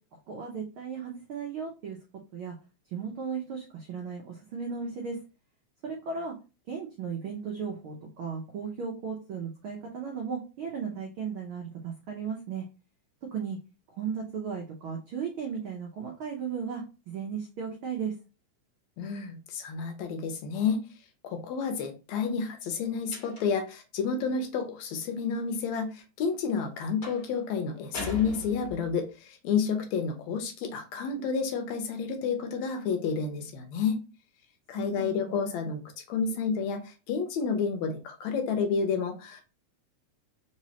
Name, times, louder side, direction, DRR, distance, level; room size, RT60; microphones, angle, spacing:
voice 1, 0.1-2.0 2.3-2.5 2.9-5.2 5.8-6.3 6.7-12.7 13.3-13.6 13.9-18.1 34.8-35.4, right 6 dB, 90° right, -1 dB, 1.1 m, -36 dB
voice 2, 19.0-20.9 21.2-34.0 34.7-35.8 36.1-39.4, left 5 dB, 75° left, 5 dB, 1.9 m, -30 dB
sound 1, 23.1-23.7 27.0-27.3 27.9-29.0, left 2 dB, 30° left, 1.7 m, -39 dB
4.5 x 3.1 x 2.8 m, 0.31 s
omnidirectional pair, 3.4 m